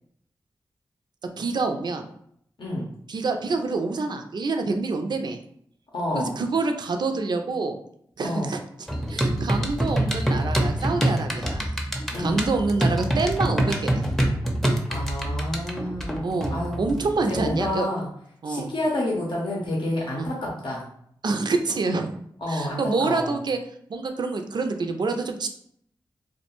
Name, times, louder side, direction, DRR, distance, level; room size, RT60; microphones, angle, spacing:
voice 1, 1.4-2.1 3.1-5.4 6.1-7.8 8.2-8.6 9.1-11.8 12.2-14.0 16.2-17.9 18.4-18.7 20.2-20.3 21.2-22.1 22.5-23.6 23.9-25.5, right 3 dB, 55° right, 6 dB, 0.4 m, -27 dB
voice 2, 5.9-6.3 8.2-8.5 12.1-12.5 14.9-16.9 17.3-18.1 18.5-20.8 22.4-23.3, left 1 dB, 70° left, -3 dB, 0.7 m, -29 dB
sound 1, 8.9-17.7, right 1 dB, 5° left, 0.5 m, -26 dB
2.3 x 2.1 x 2.9 m, 0.68 s
cardioid pair, 45°, 9 cm